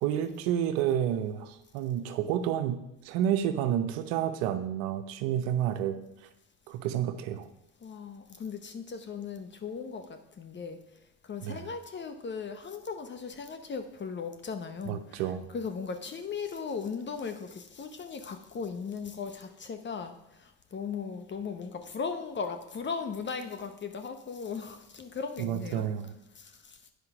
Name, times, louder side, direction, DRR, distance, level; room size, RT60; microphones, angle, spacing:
voice 1, 0.0-6.0 6.7-7.5 11.4-11.6 14.9-15.5 25.4-26.1, right 10 dB, 80° right, 8 dB, 0.8 m, -30 dB
voice 2, 7.8-10.8 11.2-15.2 15.5-25.9 26.3-26.8, left 5 dB, 35° left, 8 dB, 0.8 m, -37 dB
8.3 x 5.0 x 5.9 m, 0.87 s
supercardioid pair, 80°, 33 cm